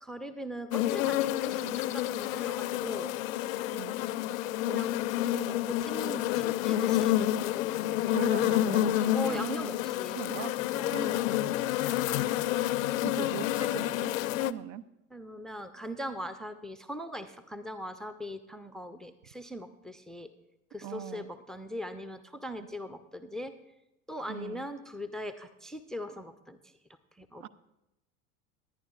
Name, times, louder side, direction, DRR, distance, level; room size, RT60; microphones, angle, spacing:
voice 1, 0.0-3.2 4.6-7.1 9.1-11.3 11.8-12.2 15.1-20.3 20.7-23.5 24.1-26.6 27.2-27.5, equal, ahead, 12 dB, 0.5 m, -40 dB
sound 1, 0.7-14.5, left 13 dB, 70° left, 0.5 m, -29 dB
voice 2, 8.1-9.6 10.1-10.5 10.9-11.2 12.5-14.8 20.8-21.3 24.3-24.7 27.4-27.5, right 10 dB, 55° right, 16 dB, 0.5 m, -40 dB
18.5 x 11.0 x 2.4 m, 0.88 s
figure-of-eight pair, 75°, 42 cm